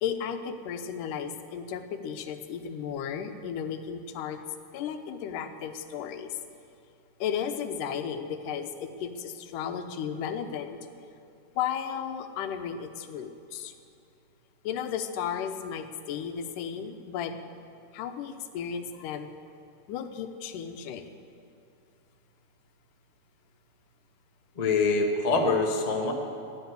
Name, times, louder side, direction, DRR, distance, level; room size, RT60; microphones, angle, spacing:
voice 1, 0.0-4.4 4.7-6.4 7.2-10.8 11.6-13.7 14.6-17.3 17.9-19.3 19.9-21.1, left 8 dB, 85° left, 8 dB, 2.4 m, -34 dB
voice 2, 24.6-26.1, left 3 dB, 65° left, 1 dB, 0.4 m, -24 dB
15.0 x 11.0 x 8.1 m, 2.7 s
omnidirectional pair, 3.6 m